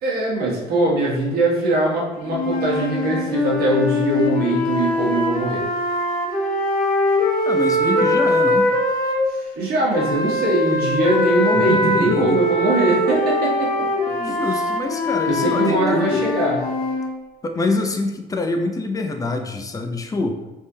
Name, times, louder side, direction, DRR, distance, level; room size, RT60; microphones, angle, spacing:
voice 1, 0.0-5.6 9.5-13.9 15.3-16.6, right 2 dB, 65° right, -4 dB, 1.2 m, -21 dB
sound 1, 2.3-9.2 9.9-17.1, left 1 dB, 60° left, 0.9 m, -22 dB
voice 2, 7.5-8.7 11.5-12.5 14.1-16.2 17.4-20.4, left 2 dB, 20° left, 5 dB, 0.4 m, -25 dB
3.5 x 3.2 x 2.7 m, 1.1 s
cardioid pair, 110°, 17 cm